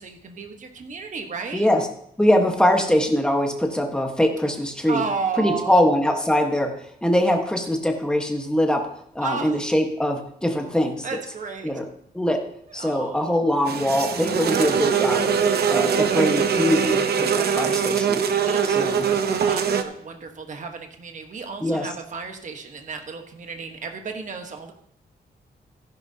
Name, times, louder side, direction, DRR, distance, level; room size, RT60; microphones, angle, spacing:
voice 1, 0.0-1.7 4.9-5.8 9.2-9.6 11.0-11.7 12.7-13.4 17.4-17.9 18.3-24.7, right 5 dB, 50° right, 4 dB, 1.3 m, -33 dB
voice 2, 1.5-1.9 2.2-5.0 5.4-8.9 9.1-11.2 11.6-11.8 12.1-12.4 12.7-15.4 15.7-18.2 18.6-19.1 21.6-21.9, left 1 dB, 5° left, 2 dB, 1.3 m, -22 dB
sound 1, 13.7-19.8, right 7 dB, 75° right, 0.9 m, -22 dB
16.0 x 10.5 x 2.8 m, 0.69 s
wide cardioid pair, 165°, 16 cm